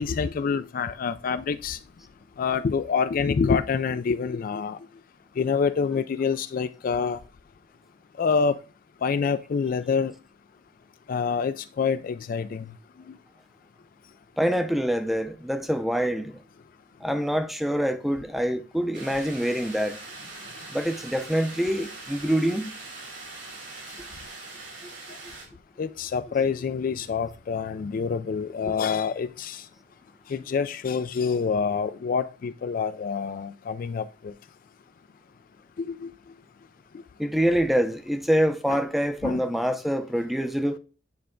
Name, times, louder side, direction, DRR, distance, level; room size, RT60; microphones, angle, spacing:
voice 1, 0.0-1.8 2.4-4.8 5.4-7.2 8.2-8.6 9.0-10.1 11.1-12.6 25.8-29.6 30.3-34.3 35.8-36.1 38.7-38.8 39.2-39.6, left 5 dB, 50° left, 0.3 m, -26 dB
voice 2, 14.4-16.4 17.0-20.0 20.7-22.7 24.8-24.9 37.2-40.8, equal, ahead, 0.6 m, -25 dB
sound 1, 18.9-25.5, right 3 dB, 70° right, 2.8 m, -42 dB
8.9 x 3.4 x 3.7 m
head